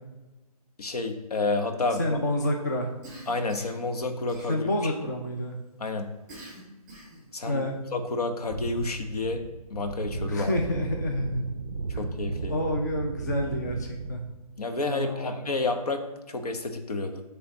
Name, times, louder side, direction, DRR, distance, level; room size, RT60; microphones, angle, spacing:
voice 1, 0.8-2.2 3.3-4.9 5.8-6.1 7.3-7.6 7.9-9.4 9.7-10.5 12.0-12.6 14.6-17.2, left 3 dB, 70° left, 5 dB, 1.0 m, -30 dB
voice 2, 2.0-2.9 4.5-5.6 7.5-7.8 10.3-11.4 11.9-12.0 12.5-14.2 14.9-15.5, left 1 dB, 25° left, 2 dB, 0.4 m, -28 dB
Cough, 3.0-3.8 4.3-4.9 6.3-7.3, right 1 dB, 5° right, 1.8 m, -46 dB
sound 1, 8.4-14.4, right 4 dB, 45° right, 0.4 m, -35 dB
7.9 x 3.3 x 4.0 m, 1.1 s
hypercardioid pair, 170°, 20 cm